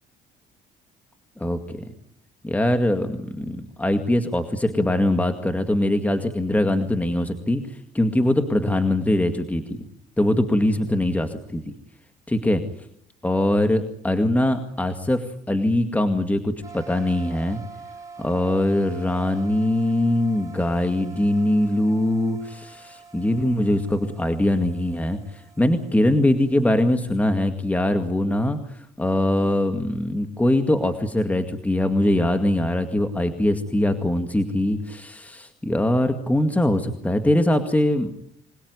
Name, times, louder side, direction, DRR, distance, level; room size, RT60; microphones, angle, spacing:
voice 1, 1.4-1.8 2.4-9.9 10.2-11.6 12.3-12.6 13.2-17.6 18.2-38.1, left 1 dB, 10° left, 8 dB, 2.1 m, -22 dB
sound 1, 16.6-27.2, right 4 dB, 20° right, 7.5 m, -45 dB
26.0 x 20.0 x 9.7 m, 0.69 s
cardioid pair, 110°, 17 cm